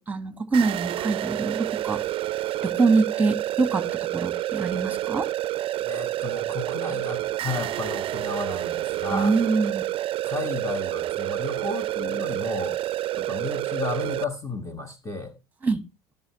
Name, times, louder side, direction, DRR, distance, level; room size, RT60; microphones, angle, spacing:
voice 1, 0.0-2.0 2.6-5.3 9.1-9.8 15.6-15.8, right 4 dB, 10° right, 1.5 m, -24 dB
sound 1, 0.5-14.2, right 14 dB, 40° right, 0.5 m, -29 dB
voice 2, 5.8-9.3 10.2-12.8 13.2-15.3, left 3 dB, 20° left, 1.4 m, -33 dB
16.0 x 6.9 x 3.0 m
hypercardioid pair, 70°, 14 cm